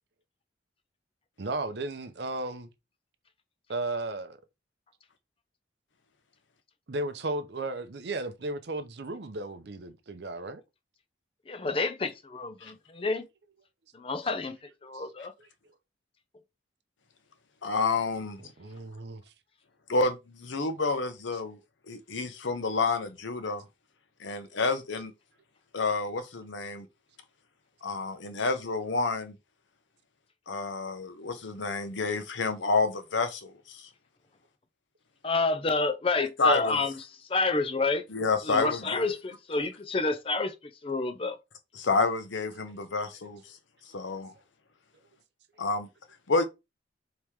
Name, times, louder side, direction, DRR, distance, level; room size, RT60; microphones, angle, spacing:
voice 1, 1.4-2.7 3.7-4.4 6.9-10.6 14.9-15.0 18.4-19.2, right 2 dB, 60° right, 0.6 m, -35 dB
voice 2, 11.5-13.3 13.9-14.6 14.8-15.3 35.2-36.9 37.3-38.0 38.5-40.5 40.8-41.4, left 3 dB, 30° left, 0.5 m, -29 dB
voice 3, 17.6-18.4 19.9-21.6 21.9-23.6 24.2-25.1 25.7-26.9 27.8-29.3 30.5-33.9 36.4-36.8 38.1-39.1 41.7-43.4 43.9-44.3 45.6-45.9 46.3-46.4, left 3 dB, 75° left, 0.8 m, -29 dB
4.6 x 3.0 x 3.5 m
head